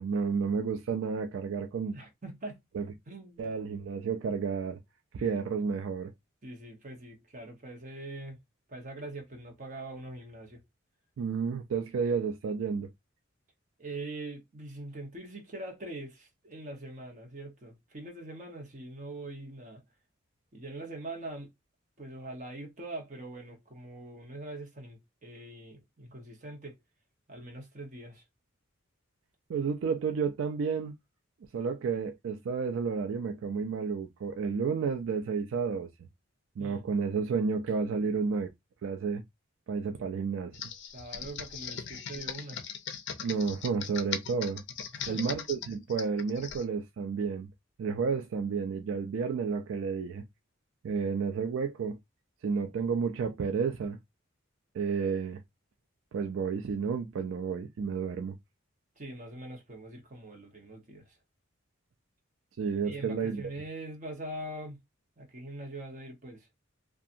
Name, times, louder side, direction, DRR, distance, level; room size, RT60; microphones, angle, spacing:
voice 1, 0.0-2.0 2.7-2.8 3.4-4.8 5.1-6.1 11.2-12.9 29.5-30.9 31.5-35.9 36.6-38.5 38.8-39.2 39.7-40.6 43.2-44.6 45.1-47.5 47.8-50.2 50.8-52.0 52.4-54.0 54.7-55.4 56.1-58.3 62.6-63.4, right 5 dB, 70° right, 0.3 m, -31 dB
voice 2, 1.9-2.6 3.1-3.5 6.4-8.4 8.7-10.6 13.8-19.8 20.5-21.5 22.0-26.8 27.3-28.2 36.6-36.8 40.9-42.7 44.9-45.3 59.0-61.2 62.8-64.8 65.2-66.5, right 2 dB, 40° right, 0.8 m, -43 dB
Computer keyboard, 40.5-46.6, left 7 dB, 60° left, 0.4 m, -39 dB
2.7 x 2.3 x 2.5 m
head